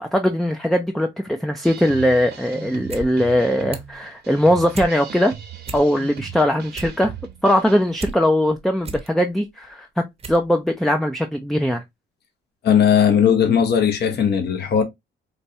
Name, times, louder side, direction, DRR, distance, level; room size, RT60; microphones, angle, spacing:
voice 1, 0.0-5.3 5.7-7.1 7.4-9.9 10.3-11.8, equal, ahead, 0.4 m, -20 dB
sound 1, 1.6-7.9, right 7 dB, 55° right, 0.9 m, -38 dB
sound 2, 2.7-3.1 3.4-4.0 4.4-4.9 5.3-5.4 5.6-6.2 6.5-8.2 8.6-9.1 9.6-9.7 10.2-10.5 10.8-10.9, right 4 dB, 30° right, 0.8 m, -34 dB
voice 2, 12.6-14.8, left 8 dB, 55° left, 0.8 m, -17 dB
4.2 x 2.3 x 2.6 m
cardioid pair, 90°, 20 cm